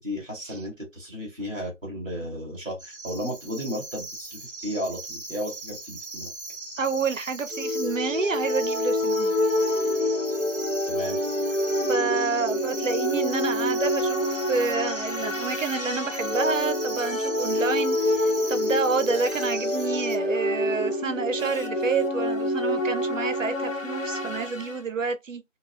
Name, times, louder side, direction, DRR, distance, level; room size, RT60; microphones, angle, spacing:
voice 1, 0.0-6.3 10.9-11.2, equal, ahead, 1.6 m, -34 dB
sound 1, 2.8-20.2, right 2 dB, 45° right, 1.0 m, -39 dB
voice 2, 6.8-9.3 11.9-25.4, right 4 dB, 80° right, 0.6 m, -29 dB
sound 2, 7.5-24.8, left 1 dB, 90° left, 1.2 m, -27 dB
4.0 x 2.2 x 2.3 m
figure-of-eight pair, 170°, 38 cm